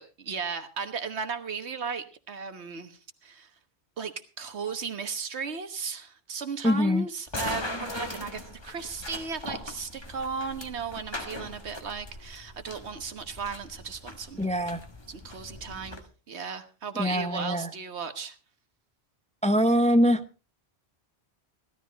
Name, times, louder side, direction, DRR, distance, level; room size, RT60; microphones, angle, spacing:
voice 1, 0.0-3.5 4.0-14.4 15.1-16.0 16.3-18.4, right 5 dB, 90° right, 9 dB, 1.5 m, -36 dB
voice 2, 6.6-7.1 14.4-14.8 17.0-17.7 19.4-20.2, equal, 10° left, 9 dB, 0.6 m, -23 dB
sound 1, 7.3-16.0, left 1 dB, 25° left, 1.6 m, -40 dB
16.0 x 12.5 x 4.0 m, 0.35 s
omnidirectional pair, 1.1 m